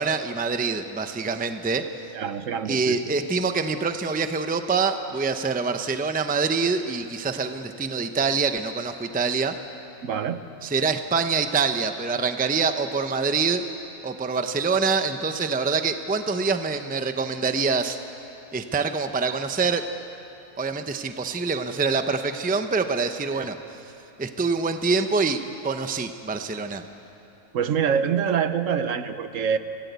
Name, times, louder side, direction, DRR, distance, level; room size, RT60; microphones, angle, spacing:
voice 1, 0.0-1.8 2.6-9.6 10.6-13.6 14.0-18.0 18.5-19.8 20.6-23.5 24.2-26.8, right 4 dB, 10° right, 8 dB, 0.6 m, -25 dB
voice 2, 2.1-3.0 10.0-10.4 23.3-23.5 27.5-29.6, right 7 dB, 65° right, 10 dB, 1.2 m, -25 dB
25.5 x 17.5 x 8.2 m, 2.9 s
omnidirectional pair, 1.5 m